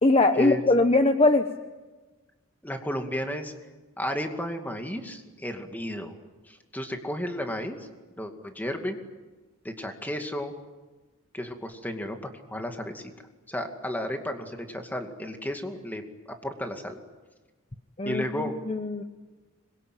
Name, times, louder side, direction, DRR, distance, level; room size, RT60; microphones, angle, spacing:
voice 1, 0.0-1.4 18.0-18.2 18.7-19.0, left 2 dB, 25° left, 8 dB, 0.9 m, -21 dB
voice 2, 2.6-3.5 4.0-6.1 6.5-7.9 8.2-9.0 9.6-10.5 11.3-12.2 12.5-13.1 13.5-16.0 16.4-17.0 18.1-18.5, equal, 10° left, 5 dB, 2.3 m, -33 dB
25.5 x 22.5 x 9.2 m, 1.2 s
head